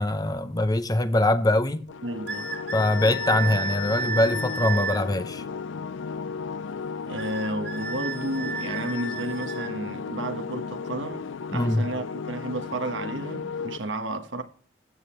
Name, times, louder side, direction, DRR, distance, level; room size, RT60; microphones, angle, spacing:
voice 1, 0.0-1.8 2.7-5.4 11.5-11.8, left 1 dB, 20° left, 0.6 m, -23 dB
sound 1, 1.9-13.8, left 5 dB, 80° left, 0.5 m, -35 dB
voice 2, 2.0-2.5 7.1-14.4, right 2 dB, 80° right, 1.2 m, -32 dB
sound 2, 2.3-5.0 7.2-9.7, right 3 dB, 65° right, 2.1 m, -32 dB
14.0 x 8.8 x 3.0 m
head